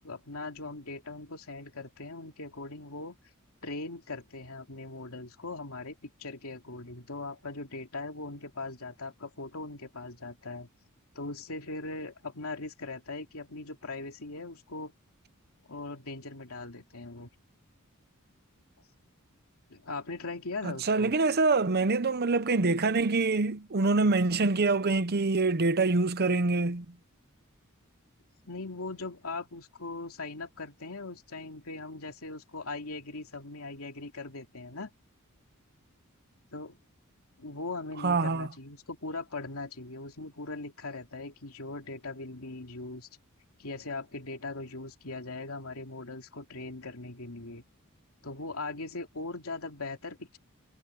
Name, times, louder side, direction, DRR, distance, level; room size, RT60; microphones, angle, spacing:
voice 1, 0.0-3.2 3.6-10.7 11.1-14.9 15.7-17.3 19.7-21.1 28.4-34.9 36.5-36.8 37.4-43.1 43.6-47.6 48.2-50.4, left 3 dB, 85° left, 2.8 m, -40 dB
voice 2, 20.6-26.9 38.0-38.5, right 3 dB, 50° right, 0.8 m, -25 dB
head